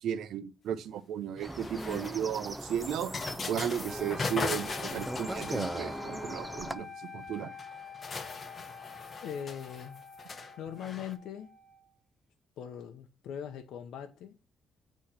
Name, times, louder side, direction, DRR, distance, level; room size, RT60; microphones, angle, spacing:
voice 1, 0.0-3.1 3.5-7.5, right 9 dB, 75° right, 0.7 m, -35 dB
sound 1, 1.4-6.2 7.3-7.4 7.6-11.1, left 4 dB, 40° left, 1.0 m, -39 dB
sound 2, 1.4-6.7, right 1 dB, 10° right, 0.6 m, -39 dB
sound 3, 3.8-11.9, left 6 dB, 30° right, 1.1 m, -47 dB
voice 2, 9.2-10.0 10.6-11.6 12.6-14.4, left 9 dB, 80° left, 0.6 m, -41 dB
8.6 x 3.1 x 5.7 m
cardioid pair, 90°, 0 cm